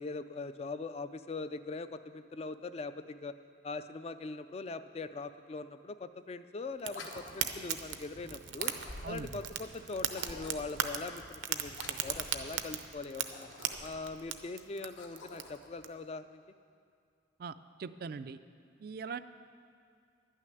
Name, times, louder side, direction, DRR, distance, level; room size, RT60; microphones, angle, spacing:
voice 1, 0.0-3.3 3.6-8.7 9.1-13.5 13.8-16.4, left 3 dB, 30° left, 11 dB, 0.3 m, -41 dB
sound 1, 6.8-7.7 8.5-9.4 10.1-10.8 11.7-12.4 13.2-14.2 14.8-15.7, left 2 dB, 80° left, 1.3 m, -48 dB
Fire, 6.8-15.9, right 9 dB, 75° right, 0.7 m, -39 dB
voice 2, 17.8-18.4 18.8-19.2, right 5 dB, 50° right, 12 dB, 0.3 m, -40 dB
11.5 x 6.4 x 9.1 m, 2.3 s
head